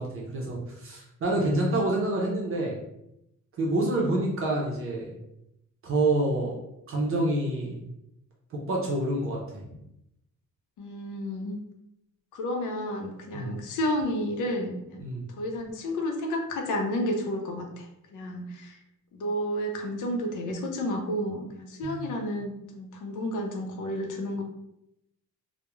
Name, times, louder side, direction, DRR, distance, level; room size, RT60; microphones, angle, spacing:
voice 1, 0.0-2.8 3.6-5.1 5.8-6.5 6.9-7.9 8.7-9.6 13.3-13.5 15.0-15.2 21.8-22.1, right 2 dB, 45° right, -3 dB, 0.5 m, -27 dB
voice 2, 10.8-11.6 12.3-15.0 15.3-18.8 19.1-24.4, left 1 dB, 90° left, 3 dB, 0.6 m, -31 dB
2.3 x 2.1 x 2.9 m, 0.82 s
wide cardioid pair, 180°, 30 cm